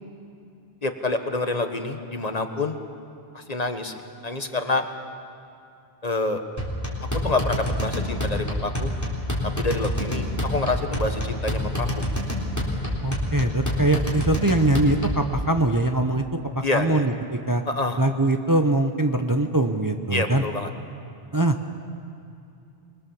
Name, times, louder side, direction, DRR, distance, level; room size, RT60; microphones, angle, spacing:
voice 1, 0.8-2.8 3.3-3.9 4.2-4.8 6.0-6.4 7.2-8.9 9.4-12.1 16.6-17.0 17.7-18.0 20.1-20.7, left 2 dB, 40° left, 7 dB, 1.3 m, -27 dB
sound 1, 6.6-15.3, left 1 dB, 15° left, 3.7 m, -27 dB
voice 2, 13.0-16.2 16.5-17.6 18.0-20.4 21.3-21.7, right 2 dB, 20° right, 5 dB, 0.8 m, -22 dB
25.0 x 21.5 x 7.1 m, 2.5 s
omnidirectional pair, 1.0 m